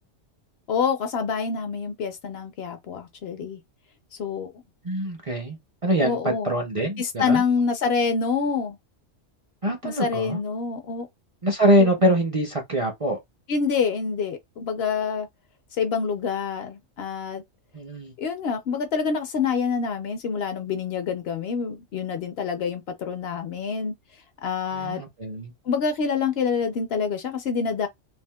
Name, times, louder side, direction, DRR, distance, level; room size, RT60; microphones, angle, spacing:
voice 1, 0.7-3.6 4.2-4.5 6.0-6.5 7.0-8.8 9.8-11.1 11.8-11.9 13.5-15.3 15.7-17.4 18.2-23.9 24.4-25.0 25.6-27.9, left 5 dB, 65° left, 0.7 m, -26 dB
voice 2, 4.8-7.4 9.6-10.4 11.4-13.2 17.7-18.1 24.7-25.5, equal, 40° right, 0.5 m, -24 dB
3.5 x 2.4 x 2.2 m
omnidirectional pair, 1.3 m